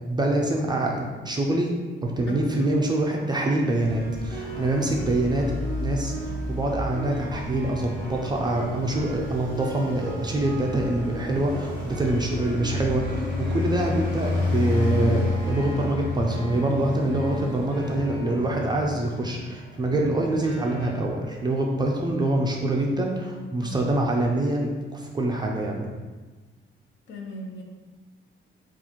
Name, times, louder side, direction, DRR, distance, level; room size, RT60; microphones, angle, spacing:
voice 1, 0.1-1.7 2.0-25.9, right 1 dB, 20° right, 0 dB, 0.4 m, -25 dB
Traffic noise roadway noise, 3.7-19.2, left 2 dB, 40° left, 1.2 m, -31 dB
sound 1, 3.8-20.9, left 1 dB, 15° left, 1.5 m, -37 dB
voice 2, 27.1-27.6, left 1 dB, 60° left, 1 dB, 0.7 m, -37 dB
4.0 x 2.4 x 4.4 m, 1.3 s
cardioid pair, 165°, 21 cm